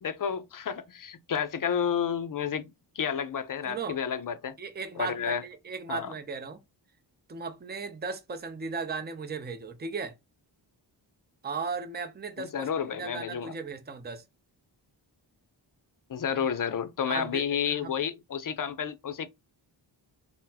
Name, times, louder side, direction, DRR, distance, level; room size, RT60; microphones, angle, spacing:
voice 1, 0.0-2.7 3.0-4.6 5.0-5.4 5.9-6.1 12.4-13.5 16.1-19.3, left 7 dB, 50° left, 0.5 m, -31 dB
voice 2, 3.6-4.0 4.6-6.6 7.3-10.1 11.4-14.3 17.1-17.9, right 5 dB, 25° right, 0.6 m, -36 dB
3.8 x 2.1 x 2.7 m
wide cardioid pair, 75°, 44 cm